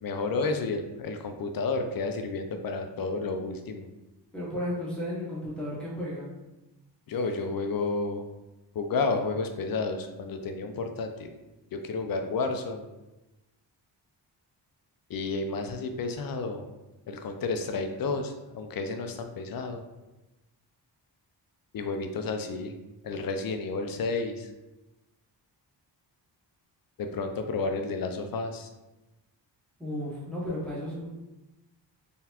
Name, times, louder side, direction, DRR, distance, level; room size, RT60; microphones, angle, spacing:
voice 1, 0.0-3.9 7.1-8.2 8.7-11.3 11.7-12.9 15.1-16.7 17.1-19.8 21.7-22.7 23.0-24.5 27.0-28.7, left 3 dB, 55° left, 6 dB, 0.5 m, -31 dB
voice 2, 4.3-6.3 29.8-31.1, left 1 dB, ahead, -8 dB, 0.9 m, -33 dB
3.9 x 3.5 x 2.9 m, 1.0 s
wide cardioid pair, 175°, 43 cm